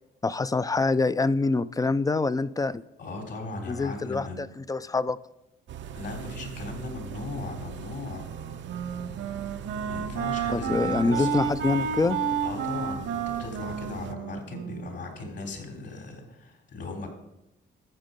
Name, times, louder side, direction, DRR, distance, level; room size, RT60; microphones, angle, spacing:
voice 1, 0.2-2.8 3.7-5.2 10.5-12.2, left 3 dB, 20° left, 16 dB, 0.4 m, -25 dB
voice 2, 3.0-4.4 5.9-8.3 9.8-11.4 12.4-17.1, left 3 dB, 60° left, 1 dB, 3.5 m, -37 dB
sound 1, 5.7-14.1, right 8 dB, 70° right, 0.6 m, -40 dB
Wind instrument woodwind instrument, 8.2-15.4, right 6 dB, 90° right, 1.6 m, -31 dB
13.0 x 7.3 x 5.3 m, 0.90 s
cardioid pair, 90°, 20 cm